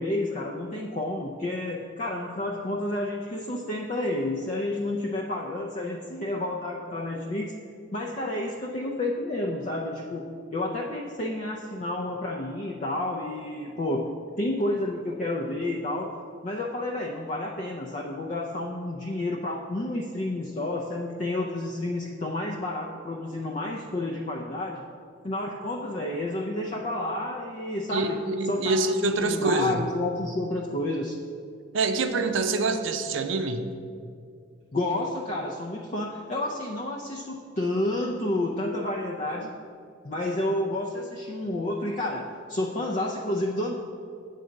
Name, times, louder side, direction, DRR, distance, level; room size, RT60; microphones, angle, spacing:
voice 1, 0.0-7.5 7.9-10.2 10.5-14.1 14.4-16.1 16.4-24.8 25.2-28.2 28.4-31.2 34.7-39.5 40.0-43.8, left 1 dB, 35° left, -1 dB, 0.5 m, -30 dB
voice 2, 27.9-29.8 31.7-33.6, right 3 dB, 75° right, 8 dB, 0.6 m, -25 dB
8.1 x 3.9 x 6.4 m, 2.3 s
head